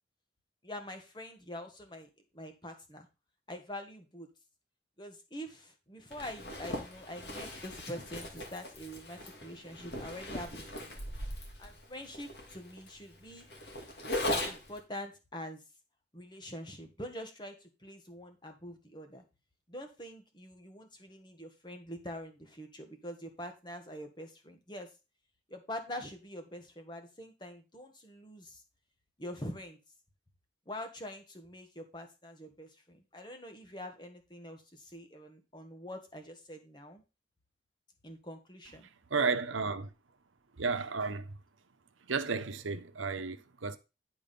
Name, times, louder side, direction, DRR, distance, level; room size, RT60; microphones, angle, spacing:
voice 1, 0.6-3.1 3.5-4.3 5.0-11.0 11.6-13.5 14.2-15.6 16.1-19.2 19.7-24.9 25.5-28.6 29.2-29.8 30.7-37.0 38.0-38.9, left 1 dB, 25° left, 1.6 m, -45 dB
Zipper (clothing), 6.1-14.8, left 1 dB, 55° left, 2.3 m, -39 dB
voice 2, 39.1-39.9 40.6-41.3 42.1-43.8, right 4 dB, 90° right, 0.9 m, -32 dB
10.5 x 4.9 x 5.4 m
head